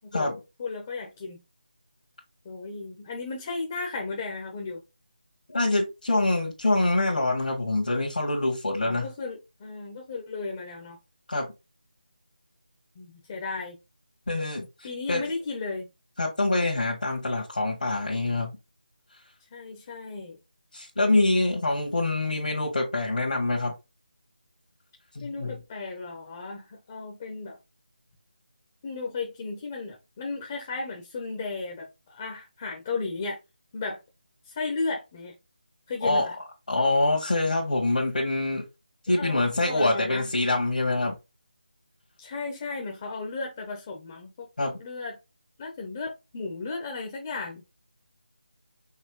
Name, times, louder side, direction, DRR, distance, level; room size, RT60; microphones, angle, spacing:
voice 1, 0.0-1.4 2.4-4.8 8.8-11.0 12.9-13.8 14.8-15.9 19.5-20.4 25.2-27.6 28.8-33.4 33.7-34.0 34.4-35.3 35.9-36.3 39.1-40.3 42.2-44.5 44.8-45.2 45.6-47.6, left 3 dB, 25° left, 1.0 m, -35 dB
voice 2, 5.5-9.1 11.3-11.5 14.3-14.7 15.1-15.2 16.2-18.5 20.7-23.7 25.2-25.5 36.0-36.3 36.7-38.6 39.1-41.1 44.6-44.8, left 2 dB, 60° left, 1.7 m, -25 dB
5.6 x 3.0 x 3.1 m
figure-of-eight pair, 160°, 5 cm